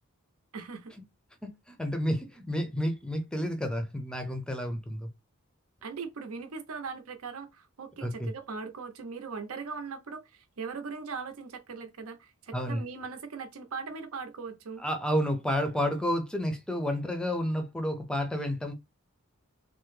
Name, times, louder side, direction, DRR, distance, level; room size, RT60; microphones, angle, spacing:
voice 1, 0.5-0.9 5.8-14.8, right 5 dB, 80° right, 0.6 m, -40 dB
voice 2, 1.4-5.1 8.0-8.3 12.5-12.8 14.8-18.7, equal, 5° left, 0.5 m, -30 dB
3.3 x 2.0 x 3.1 m
head